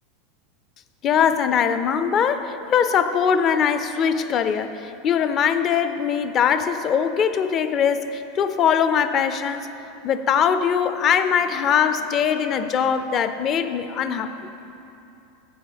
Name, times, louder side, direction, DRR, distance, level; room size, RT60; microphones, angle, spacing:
voice 1, 1.0-9.7 10.0-14.3, left 7 dB, 40° left, 11 dB, 0.5 m, -21 dB
8.8 x 7.3 x 5.1 m, 2.9 s
hypercardioid pair, 110°, 0 cm